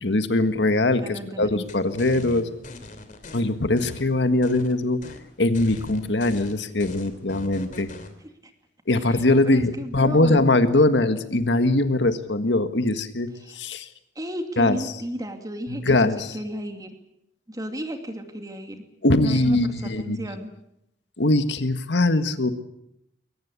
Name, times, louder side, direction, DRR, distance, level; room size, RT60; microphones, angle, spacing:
voice 1, 0.0-2.5 3.3-5.0 5.4-7.9 8.9-13.9 14.6-14.8 15.7-16.3 19.0-20.2 21.2-22.5, left 2 dB, 90° left, 9 dB, 1.7 m, -21 dB
voice 2, 1.0-1.6 8.9-10.4 13.4-13.5 14.2-16.9 17.5-18.8 19.2-20.5, equal, 20° right, 5 dB, 2.5 m, -34 dB
sound 1, 1.7-3.4 3.8-4.7 5.0-5.2 5.5-8.1, left 2 dB, 50° left, 2.9 m, -40 dB
22.5 x 18.5 x 8.3 m, 0.81 s
head